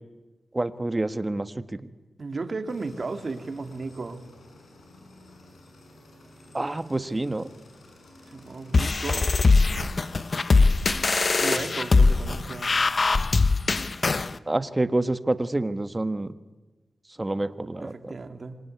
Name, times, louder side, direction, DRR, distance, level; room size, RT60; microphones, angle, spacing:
voice 1, 0.5-1.9 6.5-7.5 14.5-16.3 17.2-18.1, right 2 dB, 20° right, 11 dB, 1.4 m, -27 dB
voice 2, 2.2-4.2 8.3-9.3 11.4-12.9 17.8-18.6, right 3 dB, 45° right, 6 dB, 2.8 m, -34 dB
sound 1, 2.7-12.4, left 2 dB, 80° left, 7.7 m, -51 dB
sound 2, 8.7-14.3, left 3 dB, 45° left, 0.9 m, -21 dB
27.0 x 23.0 x 9.5 m, 1.2 s
cardioid pair, 80°, 0 cm